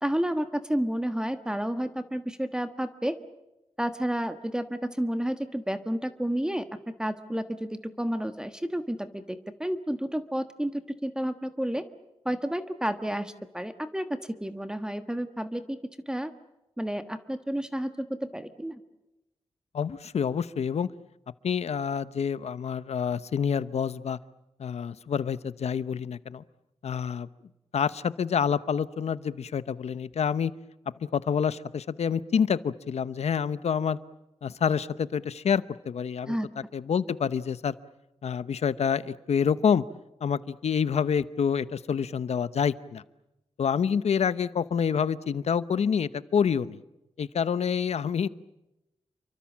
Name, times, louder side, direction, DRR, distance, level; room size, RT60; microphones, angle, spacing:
voice 1, 0.0-3.2 3.8-6.7 7.0-11.8 12.2-15.8 16.1-16.3 16.8-18.8 36.2-36.5, equal, 5° right, 9 dB, 1.4 m, -31 dB
voice 2, 19.7-20.9 21.4-24.2 24.6-26.4 26.8-27.3 27.7-30.5 31.0-34.0 34.4-36.3 36.7-37.8 38.2-39.8 40.2-43.0 43.6-46.8 47.2-48.3, left 7 dB, 90° left, 15 dB, 0.9 m, -27 dB
28.5 x 24.5 x 7.4 m, 0.94 s
wide cardioid pair, 135°, 11 cm